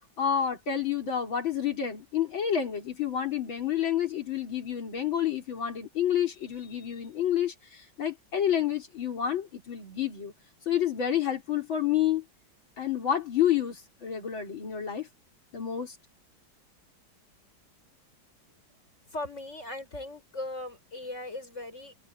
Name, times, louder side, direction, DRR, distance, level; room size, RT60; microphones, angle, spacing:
voice 1, 0.2-10.3 10.7-12.2 12.8-15.1 15.5-16.0, left 9 dB, 85° left, 4.5 m, -29 dB
voice 2, 19.1-21.9, left 2 dB, 35° left, 7.3 m, -38 dB
omnidirectional pair, 2.1 m